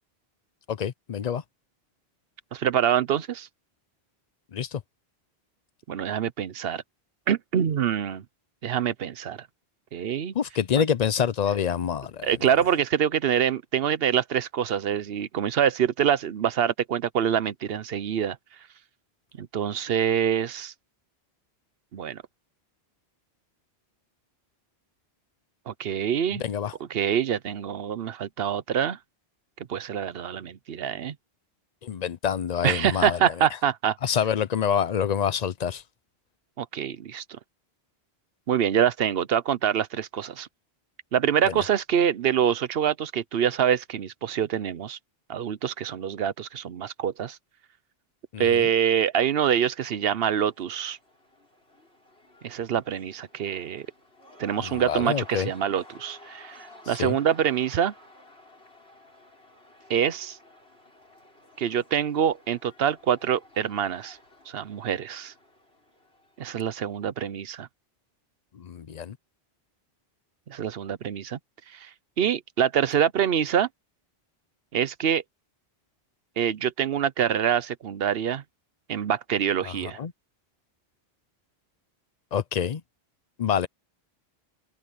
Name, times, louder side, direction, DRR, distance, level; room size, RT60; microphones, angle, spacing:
voice 1, 0.7-1.4 4.5-4.8 10.3-12.3 26.4-26.7 31.8-33.2 34.0-35.8 48.3-48.6 54.6-55.5 57.0-57.1 68.6-69.2 79.6-79.7 80.0-80.1 82.3-82.8 83.4-83.7, left 8 dB, 45° left, 0.7 m, -26 dB
voice 2, 2.5-3.5 5.9-6.8 7.3-8.2 8.6-9.5 9.9-10.3 10.8-10.9 12.2-18.4 19.4-20.7 21.9-22.2 25.7-26.4 26.8-29.0 29.7-31.1 32.6-34.0 36.6-37.2 38.5-40.5 41.1-45.0 45.3-47.4 48.4-51.0 52.4-53.9 54.4-57.9 59.9-60.4 61.6-64.2 64.5-65.3 66.4-67.7 70.5-71.4 71.7-71.9 72.2-73.7 74.7-75.2 76.4-78.4 78.9-80.0, right 9 dB, 70° right, 1.0 m, -25 dB
Cheering / Crowd, 50.0-66.8, left 1 dB, 80° left, 8.1 m, -52 dB
omnidirectional pair, 1.1 m